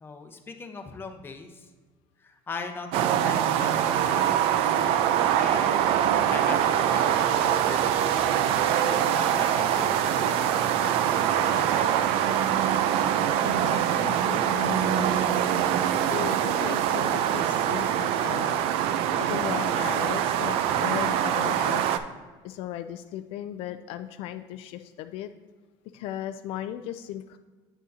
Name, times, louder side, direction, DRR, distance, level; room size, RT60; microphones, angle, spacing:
voice 1, 0.0-1.7 2.2-5.8 6.3-7.9 8.2-12.2, left 4 dB, 20° left, 5 dB, 0.8 m, -40 dB
sound 1, 2.9-22.0, right 10 dB, 70° right, 0.5 m, -24 dB
voice 2, 13.4-22.0 22.4-25.3 25.9-27.4, left 11 dB, 70° left, 9 dB, 0.4 m, -37 dB
9.0 x 6.2 x 2.7 m, 1.4 s
cardioid pair, 120°, 10 cm